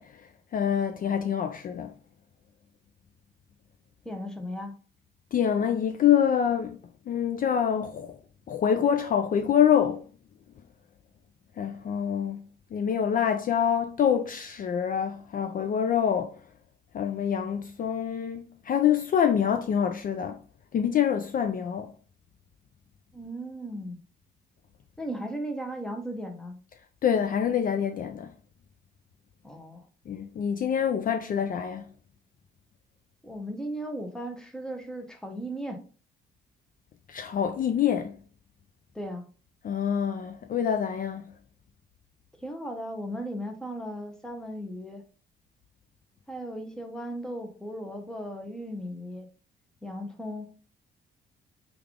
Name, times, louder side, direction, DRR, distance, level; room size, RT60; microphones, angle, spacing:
voice 1, 0.0-1.9 5.3-6.8 7.1-8.2 8.5-10.0 11.6-16.4 16.9-20.4 20.7-21.9 27.0-28.3 30.1-31.9 37.1-38.2 39.6-41.3, left 8 dB, 45° left, 0.4 m, -26 dB
voice 2, 4.0-4.8 23.1-24.0 25.0-26.6 29.4-29.9 33.2-35.8 38.9-39.3 42.4-45.0 46.3-49.3 49.8-50.5, equal, 5° left, 0.7 m, -36 dB
3.4 x 2.4 x 3.5 m
cardioid pair, 90°, 20 cm